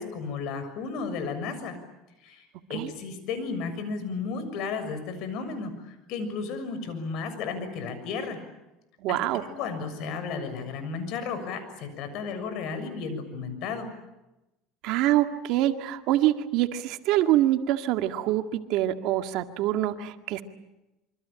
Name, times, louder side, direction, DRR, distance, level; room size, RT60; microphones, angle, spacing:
voice 1, 0.0-1.7 2.2-8.4 9.1-13.9, left 5 dB, 60° left, 10 dB, 6.7 m, -34 dB
voice 2, 9.0-9.5 14.8-20.4, right 13 dB, 65° right, 7 dB, 2.0 m, -25 dB
26.5 x 25.0 x 8.9 m, 0.97 s
cardioid pair, 130°, 0 cm